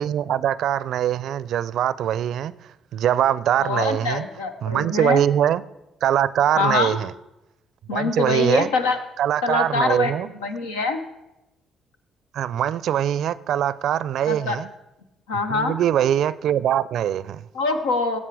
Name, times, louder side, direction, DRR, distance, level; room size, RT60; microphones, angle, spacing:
voice 1, 0.0-2.5 2.9-4.2 4.6-5.6 6.0-7.1 7.9-8.7 9.2-10.3 12.3-14.7 15.5-17.4, right 10 dB, 70° right, 18 dB, 0.4 m, -22 dB
voice 2, 3.6-5.2 6.6-7.0 7.9-9.0 9.4-10.1 10.4-11.0 14.3-14.6 15.3-15.8 17.5-18.2, left 3 dB, 90° left, 6 dB, 0.9 m, -24 dB
17.5 x 7.4 x 4.8 m, 0.96 s
hypercardioid pair, 50°, 0 cm